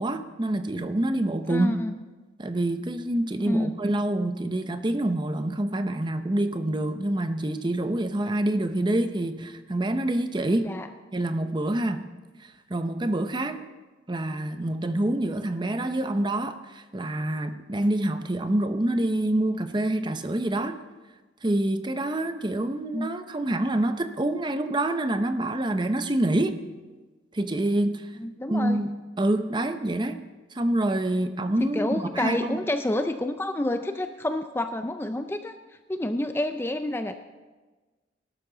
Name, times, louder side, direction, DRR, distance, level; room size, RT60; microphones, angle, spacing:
voice 1, 0.0-1.8 2.4-10.8 11.1-12.1 12.7-13.6 14.1-20.8 21.4-26.6 27.3-28.1 28.5-30.2 30.5-32.6, right 1 dB, 25° right, 9 dB, 0.7 m, -26 dB
voice 2, 1.5-1.9 3.5-3.8 10.6-10.9 22.9-23.1 28.2-28.8 31.6-35.5 35.9-37.2, left 1 dB, 10° left, 8 dB, 0.4 m, -28 dB
18.5 x 12.5 x 3.9 m, 1.3 s
head